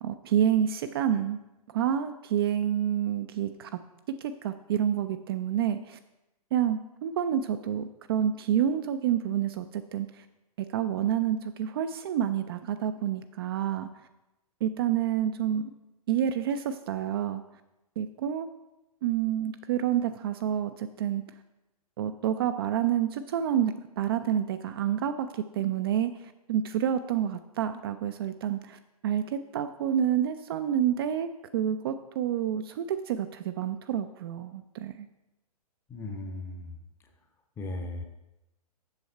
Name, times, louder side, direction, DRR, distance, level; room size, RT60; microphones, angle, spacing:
voice 1, 0.0-1.4 1.7-3.8 4.2-6.0 6.5-10.2 10.6-13.9 14.6-15.7 16.1-17.4 18.0-18.5 19.0-21.2 22.0-31.3 31.5-35.1, right 10 dB, 40° right, 9 dB, 0.4 m, -28 dB
voice 2, 35.9-36.7 37.6-38.0, left 2 dB, 10° left, 6 dB, 0.7 m, -36 dB
7.3 x 6.2 x 4.4 m, 0.98 s
figure-of-eight pair, 115°, 20 cm